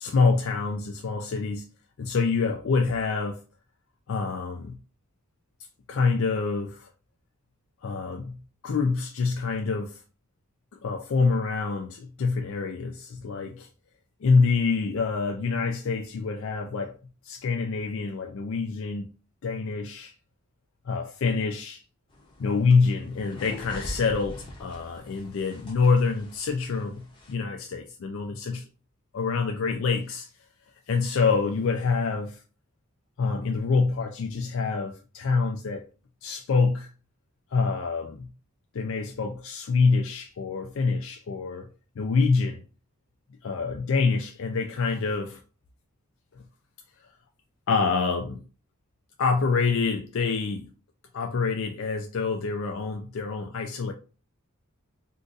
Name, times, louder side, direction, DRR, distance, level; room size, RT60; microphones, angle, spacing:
voice 1, 0.0-1.6 2.0-3.4 4.1-4.8 5.9-6.9 7.8-8.4 8.6-10.0 10.8-13.7 14.2-16.9 17.2-19.1 19.4-20.1 20.9-21.8 22.4-28.7 29.1-30.3 30.9-32.4 33.2-35.8 36.2-36.9 37.5-38.3 38.7-41.7 42.0-42.6 43.4-45.4 46.3-46.4 47.7-48.4 49.2-50.7 51.1-53.9, left 4 dB, 60° left, 0.4 m, -26 dB
sound 1, 22.1-27.3, left 1 dB, 25° left, 0.7 m, -43 dB
2.6 x 2.4 x 3.8 m
head